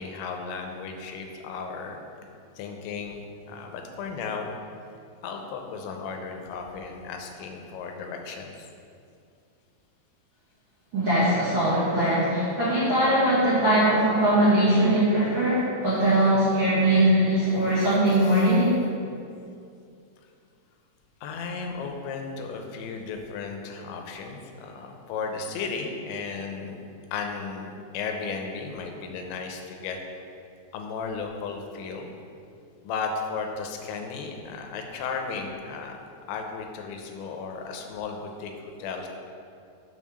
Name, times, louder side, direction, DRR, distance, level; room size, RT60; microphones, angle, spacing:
voice 1, 0.0-2.0 2.6-4.5 5.2-8.7 18.1-18.5 21.2-26.8 27.1-30.0 30.7-32.1 32.8-36.0 36.3-38.5 38.8-39.1, left 5 dB, 90° left, 3 dB, 3.1 m, -35 dB
voice 2, 10.9-18.8, right 1 dB, 50° right, -13 dB, 1.4 m, -21 dB
6.4 x 5.5 x 6.3 m, 2.5 s
omnidirectional pair, 5.1 m